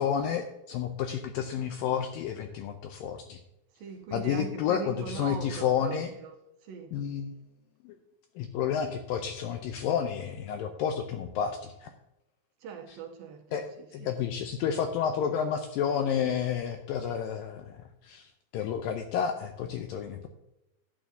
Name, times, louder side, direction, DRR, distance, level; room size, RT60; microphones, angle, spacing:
voice 1, 0.0-3.4 4.1-6.1 6.9-7.4 7.8-8.0 8.4-11.9 13.5-13.7 13.9-20.3, left 8 dB, 85° left, 2.0 m, -30 dB
voice 2, 3.7-6.4 6.6-7.0 12.6-14.1, right 6 dB, 75° right, 2.3 m, -41 dB
12.5 x 9.2 x 2.7 m
omnidirectional pair, 4.6 m